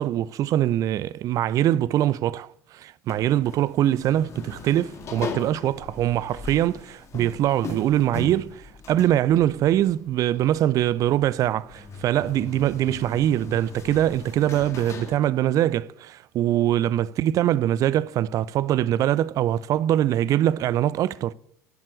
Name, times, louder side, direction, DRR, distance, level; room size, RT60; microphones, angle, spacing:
voice 1, 0.0-21.3, right 12 dB, 45° right, 0.5 m, -23 dB
sound 1, 3.1-15.2, left 3 dB, 35° left, 2.1 m, -39 dB
12.0 x 7.5 x 8.2 m
hypercardioid pair, 75°, 8 cm